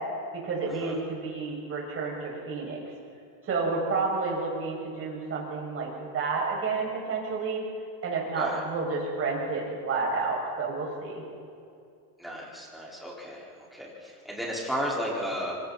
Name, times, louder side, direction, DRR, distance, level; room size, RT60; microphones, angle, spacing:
voice 1, 0.3-2.8 3.4-7.6 8.0-11.3, right 4 dB, 30° right, -2 dB, 6.8 m, -30 dB
voice 2, 12.2-15.5, equal, ahead, -5 dB, 4.8 m, -34 dB
26.0 x 25.0 x 4.3 m, 2.4 s
supercardioid pair, 140°, 45 cm